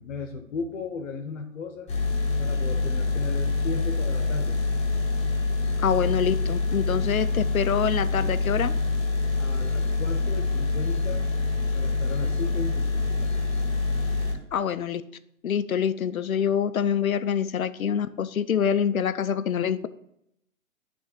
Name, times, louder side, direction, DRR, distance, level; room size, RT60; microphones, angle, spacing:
voice 1, 0.0-1.9 2.4-4.6 9.4-11.3 11.7-13.3, left 4 dB, 60° left, 4 dB, 1.0 m, -36 dB
sound 1, 1.9-14.3, left 3 dB, 15° left, 1.4 m, -26 dB
voice 2, 5.8-8.7 14.5-15.0 15.4-19.9, left 8 dB, 85° left, 13 dB, 0.6 m, -25 dB
9.5 x 3.5 x 4.9 m, 0.76 s
figure-of-eight pair, 115°, 41 cm